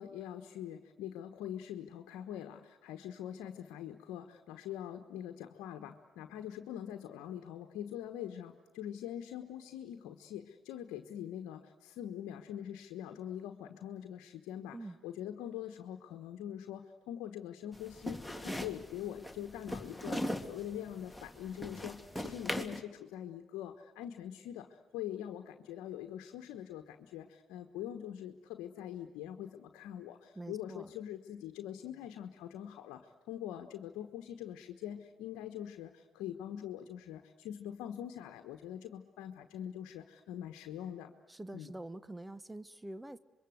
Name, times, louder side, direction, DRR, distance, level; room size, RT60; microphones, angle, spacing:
voice 1, 0.0-14.8 15.0-41.1 41.5-41.7, left 10 dB, 80° left, 6 dB, 1.2 m, -43 dB
sound 1, 17.7-22.8, left 1 dB, 5° left, 2.5 m, -40 dB
voice 2, 30.3-30.9 41.3-43.2, right 1 dB, 15° right, 15 dB, 1.1 m, -45 dB
26.5 x 23.0 x 8.0 m, 1.2 s
hypercardioid pair, 55°, 0 cm